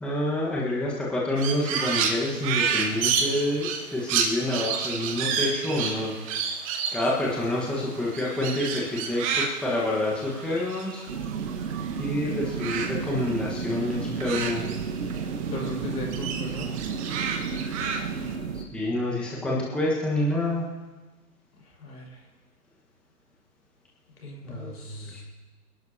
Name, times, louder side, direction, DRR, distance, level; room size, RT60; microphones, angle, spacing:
voice 1, 0.0-6.1 6.9-9.2 9.6-11.0 12.0-14.8 18.5-20.7 24.4-25.2, left 1 dB, ahead, -5 dB, 1.4 m, -28 dB
Crow, 1.4-12.1 12.3-15.3 15.6-18.3, right 6 dB, 20° right, 0.9 m, -30 dB
sound 1, 11.1-18.7, right 6 dB, 50° right, 1.5 m, -32 dB
voice 2, 15.5-16.7 21.6-22.2 24.2-25.2, left 2 dB, 70° left, -1 dB, 5.9 m, -37 dB
26.0 x 12.0 x 2.9 m, 1.2 s
hypercardioid pair, 140°, 48 cm